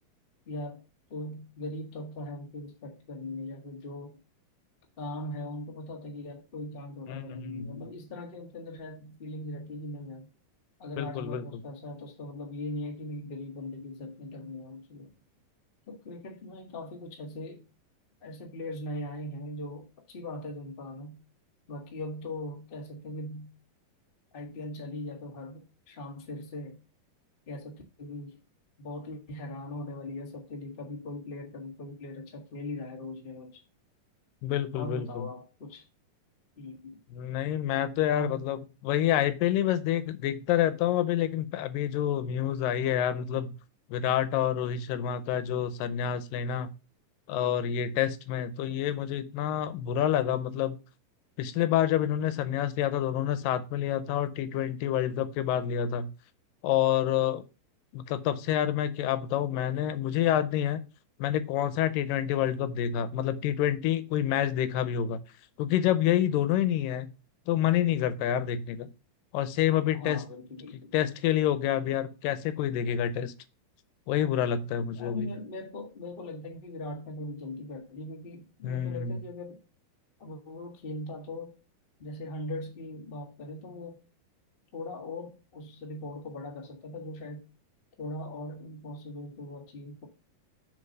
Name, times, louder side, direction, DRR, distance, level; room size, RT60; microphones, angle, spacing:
voice 1, 0.5-0.8 1.1-4.2 5.0-10.3 10.8-15.1 15.9-17.6 18.2-21.2 21.7-23.5 24.3-26.8 27.5-28.4 28.8-33.6 34.7-35.8 36.6-37.0 38.1-38.5 69.9-70.9 74.9-79.6 80.2-81.6 82.0-84.0 84.7-87.4 88.0-90.1, left 1 dB, 45° left, 0.7 m, -40 dB
voice 2, 7.1-7.9 11.0-11.4 34.4-35.3 37.1-38.6 38.8-43.6 43.9-46.7 47.3-50.8 51.4-56.1 56.6-57.4 57.9-60.8 61.2-65.2 65.6-67.1 67.5-68.9 69.3-70.2 70.9-73.3 74.1-75.3 78.6-79.2, left 10 dB, 90° left, 2.4 m, -28 dB
6.5 x 5.2 x 5.3 m
omnidirectional pair, 3.9 m